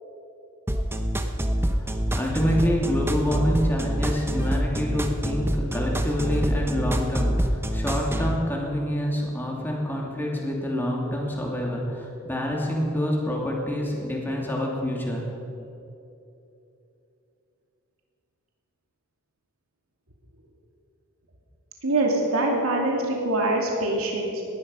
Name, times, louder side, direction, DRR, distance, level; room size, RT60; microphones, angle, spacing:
sound 1, 0.7-8.4, equal, 10° right, 0.8 m, -26 dB
voice 1, 1.7-15.3, equal, 10° left, -2 dB, 2.6 m, -27 dB
voice 2, 21.8-24.4, right 2 dB, 80° right, -1 dB, 2.6 m, -24 dB
18.5 x 12.0 x 5.5 m, 2.9 s
head